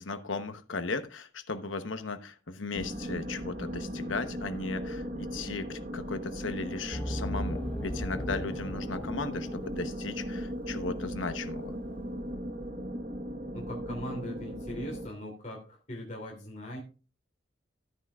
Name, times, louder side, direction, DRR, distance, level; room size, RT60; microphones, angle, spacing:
voice 1, 0.0-11.8, left 3 dB, 85° left, 1.0 m, -36 dB
sound 1, 2.7-15.1, equal, 45° right, 1.3 m, -37 dB
sound 2, 6.9-10.3, equal, 5° left, 0.5 m, -37 dB
voice 2, 13.5-16.8, equal, 40° left, 2.9 m, -40 dB
13.0 x 9.7 x 2.4 m
head